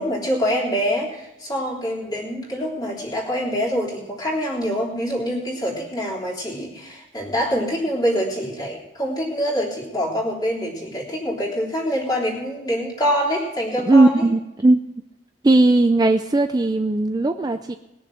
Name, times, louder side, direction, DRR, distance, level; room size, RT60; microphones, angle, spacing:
voice 1, 0.0-14.1, equal, 20° left, -4 dB, 3.4 m, -25 dB
voice 2, 13.8-15.0 15.4-17.8, right 2 dB, 20° right, 8 dB, 0.4 m, -17 dB
20.5 x 7.0 x 6.2 m, 0.94 s
head